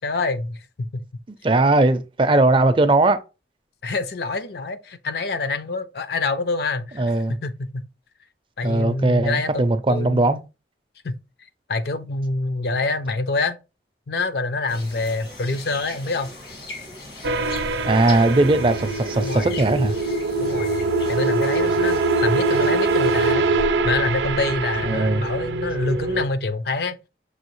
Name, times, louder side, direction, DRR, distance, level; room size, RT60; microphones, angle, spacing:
voice 1, 0.0-1.1 3.8-7.9 8.6-9.6 9.9-10.4 11.0-11.1 11.7-13.6 14.1-16.3 19.2-19.5 20.4-20.7 21.1-23.5 23.8-27.0, left 3 dB, 60° left, 0.5 m, -26 dB
voice 2, 1.4-3.2 7.0-7.4 8.6-10.4 17.9-19.9 24.8-25.3, right 2 dB, 30° right, 0.4 m, -19 dB
sound 1, 14.7-23.3, left 2 dB, 80° left, 1.7 m, -39 dB
sound 2, 17.2-26.3, right 3 dB, 85° right, 0.5 m, -23 dB
6.2 x 2.7 x 3.0 m
head